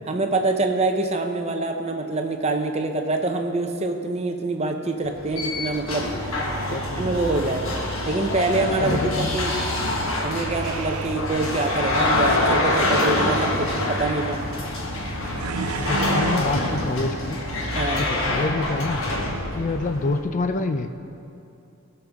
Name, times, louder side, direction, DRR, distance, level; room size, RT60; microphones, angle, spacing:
voice 1, 0.1-6.1 7.0-7.6 8.1-9.5 10.2-14.4 17.8-18.0, right 2 dB, 30° right, 5 dB, 0.7 m, -25 dB
sound 1, 5.0-20.2, left 1 dB, 75° left, 1.5 m, -26 dB
sound 2, 6.2-7.1 10.4-11.2 11.9-12.4 13.0-13.7 15.3-16.4, right 5 dB, 85° right, 0.4 m, -33 dB
voice 2, 6.5-7.2 8.8-9.4 15.7-17.4 18.0-19.0 19.5-20.9, left 3 dB, 35° left, 7 dB, 0.4 m, -27 dB
18.5 x 6.8 x 3.5 m, 2.7 s
head